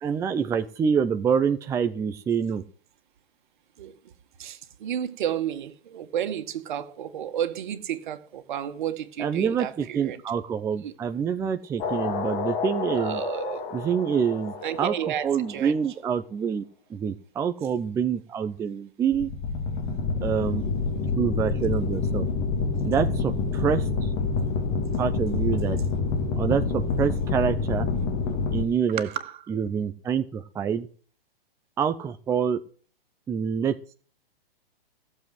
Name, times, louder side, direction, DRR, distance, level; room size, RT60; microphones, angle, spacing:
voice 1, 0.0-2.6 9.2-13.2 13.7-14.9 15.2-16.6 16.9-19.3 20.2-20.6 21.2-22.3 22.8-24.1 25.0-25.8 26.4-27.9 28.5-29.1 29.5-30.9 31.8-32.6 33.3-33.7, right 7 dB, 10° right, 0.6 m, -26 dB
voice 2, 3.8-4.1 4.4-10.2 10.8-10.9 13.0-13.6 14.6-15.7 29.0-29.4, right 10 dB, 55° right, 2.0 m, -32 dB
sound 1, 11.8-15.7 19.1-28.6, left 4 dB, 30° left, 2.4 m, -28 dB
17.0 x 7.6 x 7.8 m
hypercardioid pair, 125°, 30 cm